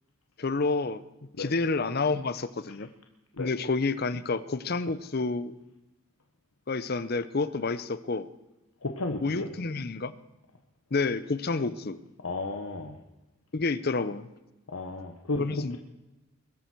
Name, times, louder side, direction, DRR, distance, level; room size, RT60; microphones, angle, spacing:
voice 1, 0.4-1.0 1.4-2.9 3.4-5.6 6.7-8.3 9.2-10.2 10.9-12.0 13.5-14.3 15.4-15.8, left 3 dB, 45° left, 15 dB, 0.6 m, -29 dB
voice 2, 8.8-9.5 12.2-13.0 14.7-15.4, left 2 dB, 90° left, 3 dB, 1.3 m, -33 dB
22.0 x 12.5 x 4.6 m, 1.0 s
head